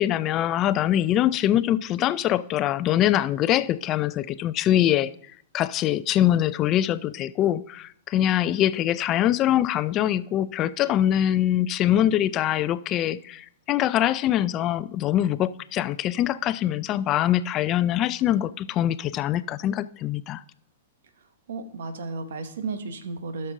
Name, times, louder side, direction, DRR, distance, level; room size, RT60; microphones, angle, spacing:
voice 1, 0.0-5.1 5.5-20.4, left 12 dB, 35° left, 0.4 m, -23 dB
voice 2, 21.5-23.5, right 4 dB, 75° right, 1.1 m, -33 dB
13.5 x 6.7 x 3.7 m
hypercardioid pair, 115°, 0 cm